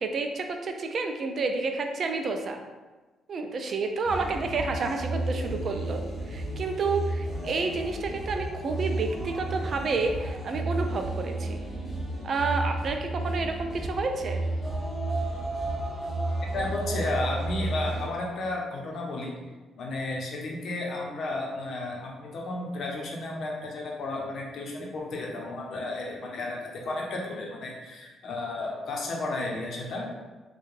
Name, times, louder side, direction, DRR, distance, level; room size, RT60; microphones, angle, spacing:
voice 1, 0.0-2.6 3.3-6.0 6.3-11.6 12.2-14.4, right 3 dB, 50° right, 5 dB, 0.4 m, -30 dB
sound 1, 4.0-18.1, right 2 dB, 10° left, 1.0 m, -32 dB
voice 2, 16.5-19.3 19.8-30.1, left 2 dB, 65° left, -1 dB, 0.7 m, -33 dB
3.3 x 2.2 x 3.2 m, 1.2 s
cardioid pair, 90°, 0 cm